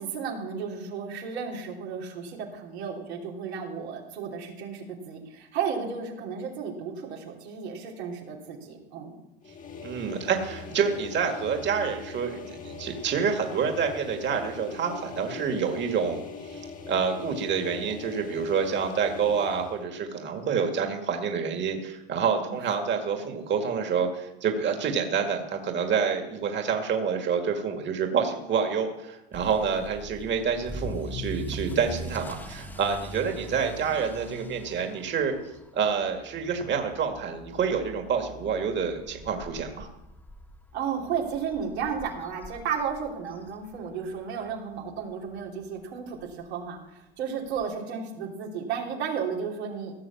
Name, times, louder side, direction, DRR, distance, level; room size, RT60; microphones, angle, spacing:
voice 1, 0.0-9.2 22.5-22.7 40.7-49.9, right 6 dB, 85° right, -1 dB, 3.1 m, -33 dB
sound 1, 9.4-19.8, left 5 dB, 25° left, 1.5 m, -41 dB
voice 2, 9.8-35.4 35.7-39.9, right 6 dB, 35° right, 4 dB, 2.0 m, -28 dB
Motor vehicle (road) / Accelerating revving vroom, 29.3-44.2 44.5-44.9 45.4-45.5 45.8-45.9 46.2-46.3 47.6-47.7, left 1 dB, 5° left, 1.4 m, -42 dB
16.5 x 6.6 x 7.1 m, 0.91 s
supercardioid pair, 105°, 31 cm